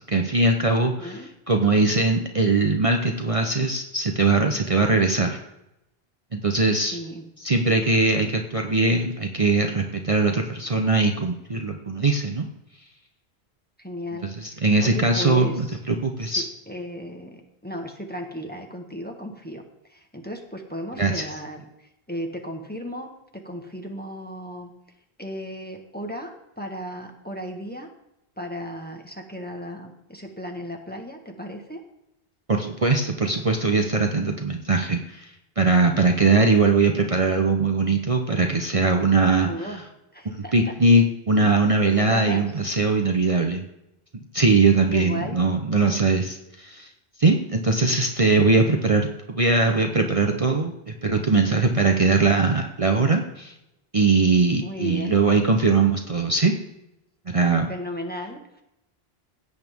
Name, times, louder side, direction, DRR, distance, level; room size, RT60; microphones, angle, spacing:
voice 1, 0.1-5.4 6.3-7.0 7.4-12.5 14.2-16.4 21.0-21.3 32.5-35.3 35.6-39.8 40.2-43.6 44.3-46.9 47.2-53.5 53.9-56.5 57.3-57.7, right 3 dB, 35° right, 3 dB, 0.9 m, -21 dB
voice 2, 0.8-1.3 6.8-7.3 13.8-14.3 14.6-15.8 16.2-19.6 19.9-21.6 22.1-24.7 25.2-27.9 28.4-31.8 39.4-39.8 40.1-40.7 42.0-42.5 44.9-45.4 54.6-55.2 57.7-58.6, equal, 10° left, 2 dB, 1.3 m, -35 dB
16.5 x 8.2 x 3.6 m, 0.86 s
omnidirectional pair, 1.0 m